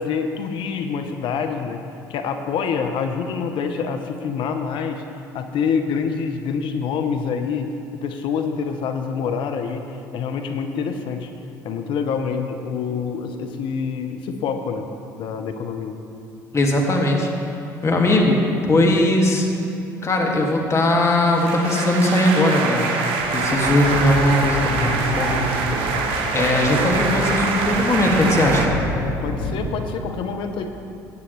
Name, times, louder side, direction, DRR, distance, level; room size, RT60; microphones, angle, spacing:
voice 1, 0.0-1.8 2.1-5.0 5.3-11.3 11.6-14.9 15.2-16.0 29.2-30.7, left 6 dB, 60° left, 6 dB, 0.8 m, -26 dB
voice 2, 16.5-17.3 17.8-19.5 20.0-22.9 23.3-25.4 25.8-25.9 26.3-28.7, left 1 dB, 30° left, -1 dB, 2.0 m, -19 dB
sound 1, 21.2-28.7, right 4 dB, 65° right, 1.2 m, -24 dB
sound 2, 23.2-29.8, left 2 dB, 75° left, 1.2 m, -30 dB
16.5 x 8.5 x 3.2 m, 2.8 s
hypercardioid pair, 60°, 10 cm